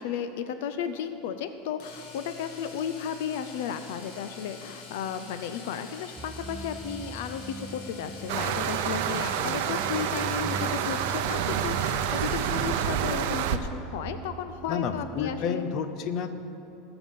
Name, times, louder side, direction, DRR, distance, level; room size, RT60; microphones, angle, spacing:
voice 1, 0.0-15.6, left 8 dB, 70° left, 10 dB, 0.6 m, -34 dB
Domestic sounds home sounds, 1.8-13.0 15.2-15.3 15.6-15.7, left 4 dB, 55° left, 2.4 m, -46 dB
sound 1, 6.2-15.5, right 3 dB, 15° right, 0.3 m, -41 dB
sound 2, 8.3-13.6, right 9 dB, 65° right, 0.7 m, -28 dB
voice 2, 14.7-16.3, left 6 dB, 40° left, 9 dB, 0.7 m, -30 dB
20.0 x 7.0 x 5.5 m, 2.9 s
supercardioid pair, 155°, 0 cm